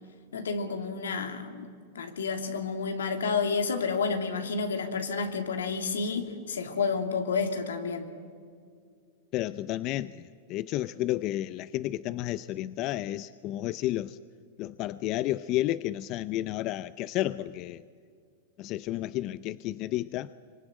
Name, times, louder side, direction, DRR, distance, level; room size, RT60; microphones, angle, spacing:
voice 1, 0.3-1.7 1.9-8.1, left 5 dB, 85° left, 5 dB, 2.8 m, -30 dB
voice 2, 9.3-14.2 14.6-17.8 18.6-20.3, left 15 dB, 45° left, 15 dB, 0.6 m, -31 dB
25.0 x 23.5 x 9.2 m, 2.2 s
hypercardioid pair, 115°, 0 cm